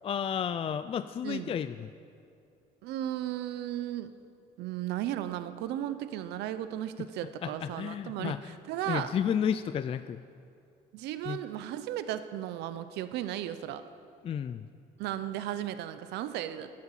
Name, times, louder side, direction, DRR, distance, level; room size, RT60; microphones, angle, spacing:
voice 1, 0.0-1.9 7.4-8.6 8.9-10.2 11.3-11.4 14.2-14.7, left 8 dB, 35° left, 12 dB, 0.3 m, -32 dB
voice 2, 1.2-1.5 2.8-4.1 4.6-9.1 10.9-13.8 15.0-16.7, right 12 dB, 85° right, 12 dB, 0.7 m, -35 dB
11.5 x 10.5 x 7.3 m, 2.6 s
cardioid pair, 110°, 17 cm